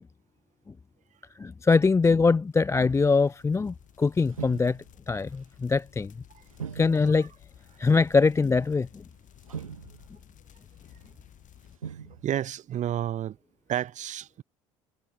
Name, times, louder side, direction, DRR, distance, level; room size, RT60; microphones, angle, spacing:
voice 1, 1.4-4.8 5.1-6.1 6.7-7.3 7.8-9.0, left 4 dB, 15° left, 0.5 m, -23 dB
sound 1, 2.0-11.8, left 10 dB, 50° left, 4.8 m, -55 dB
sound 2, 2.6-3.8 4.2-5.4 5.7-5.9 6.5-7.3 7.6-8.1 8.8-9.0 9.4-10.3 10.9-11.3 11.7-12.4, right 7 dB, 90° right, 1.3 m, -43 dB
voice 2, 12.2-13.4 13.7-14.4, right 11 dB, 45° right, 1.3 m, -30 dB
hypercardioid pair, 60°, 17 cm